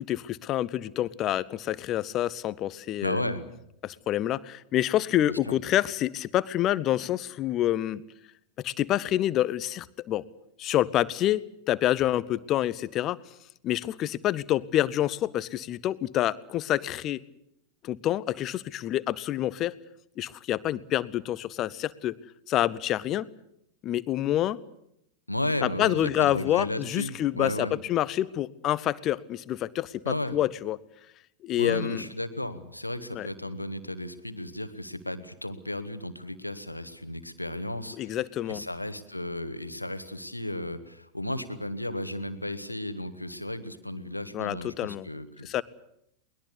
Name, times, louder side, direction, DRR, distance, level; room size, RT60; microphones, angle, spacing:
voice 1, 0.0-3.2 3.8-8.0 8.6-10.2 10.6-13.2 13.6-17.2 17.8-19.7 20.2-22.2 22.5-23.3 23.8-24.6 25.6-30.8 31.4-32.0 33.1-33.3 38.0-38.6 44.3-45.1 45.4-45.6, left 13 dB, 35° left, 20 dB, 0.9 m, -27 dB
voice 2, 3.0-3.4 5.3-5.5 25.3-27.7 30.0-30.4 31.6-38.2 38.5-45.6, left 1 dB, 85° left, 12 dB, 1.5 m, -34 dB
22.0 x 20.5 x 8.3 m, 0.77 s
figure-of-eight pair, 90°, 0 cm